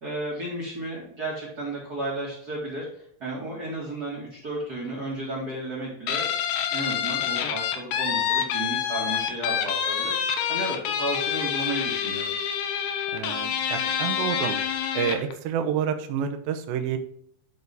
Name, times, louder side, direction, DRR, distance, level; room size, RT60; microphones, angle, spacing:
voice 1, 0.0-6.3 6.7-12.3, right 1 dB, 65° right, -6 dB, 0.9 m, -33 dB
Guitar, 6.1-15.3, left 8 dB, 80° left, 2.1 m, -27 dB
voice 2, 13.1-14.6 14.9-17.0, right 8 dB, 90° right, 7 dB, 2.1 m, -28 dB
11.5 x 4.0 x 3.5 m, 0.66 s
omnidirectional pair, 5.3 m